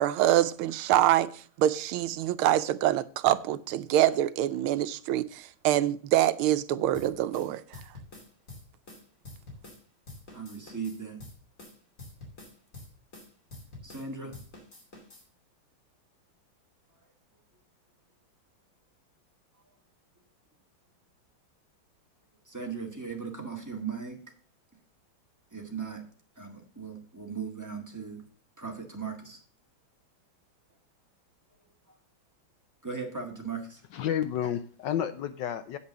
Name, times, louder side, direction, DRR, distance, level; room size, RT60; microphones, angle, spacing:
voice 1, 0.0-7.8, right 13 dB, 85° right, 1.5 m, -25 dB
sound 1, 6.9-9.8 10.1-14.1 14.3-15.3, left 2 dB, 40° left, 3.0 m, -47 dB
voice 2, 10.3-11.2 13.8-14.4 22.4-24.2 25.5-26.0 26.3-28.2 28.6-29.4 31.9-32.0 32.8-33.8, right 5 dB, 10° right, 1.6 m, -38 dB
voice 3, 33.9-35.8, left 10 dB, 75° left, 1.1 m, -30 dB
8.6 x 5.6 x 6.7 m
omnidirectional pair, 2.3 m